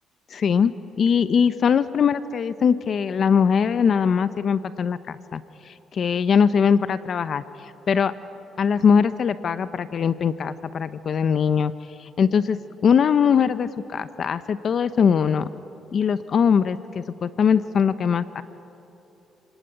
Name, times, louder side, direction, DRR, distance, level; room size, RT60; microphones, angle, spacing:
voice 1, 0.3-0.7 1.0-8.1 8.6-11.7 12.0-15.5 15.9-18.4, left 7 dB, 55° left, 13 dB, 0.8 m, -21 dB
29.0 x 19.5 x 9.4 m, 3.0 s
cardioid pair, 90°, 0 cm